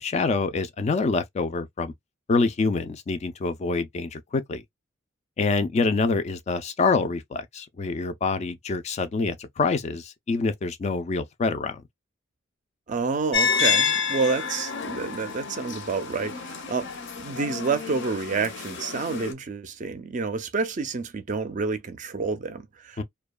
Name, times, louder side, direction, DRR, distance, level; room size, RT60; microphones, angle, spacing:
voice 1, 0.0-1.9 2.3-4.6 5.4-11.8 23.0-23.1, left 4 dB, 35° left, 0.3 m, -26 dB
voice 2, 12.9-16.9 17.2-23.0, right 4 dB, 40° right, 0.4 m, -29 dB
sound 1, 13.3-19.3, left 6 dB, 65° left, 0.6 m, -29 dB
2.7 x 2.2 x 2.2 m
head